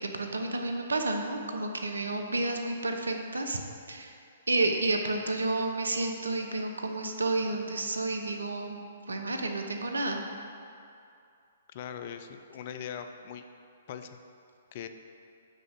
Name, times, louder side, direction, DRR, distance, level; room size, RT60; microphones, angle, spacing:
voice 1, 0.0-3.6 3.9-4.1 4.5-8.8 9.1-10.2, right 2 dB, 80° right, 4 dB, 0.9 m, -30 dB
voice 2, 11.7-13.4 13.9-14.2 14.7-14.9, left 8 dB, 45° left, 8 dB, 0.5 m, -40 dB
6.4 x 5.2 x 6.6 m, 2.5 s
figure-of-eight pair, 125°, 0 cm